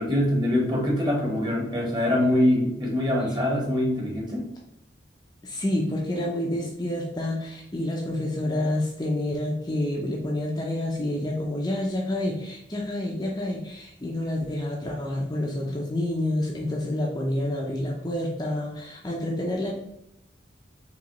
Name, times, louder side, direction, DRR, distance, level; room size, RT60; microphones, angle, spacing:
voice 1, 0.0-4.5, left 1 dB, 25° right, -1 dB, 1.1 m, -24 dB
voice 2, 5.4-19.7, left 1 dB, 20° left, -2 dB, 0.5 m, -28 dB
5.0 x 3.0 x 3.0 m, 0.82 s
head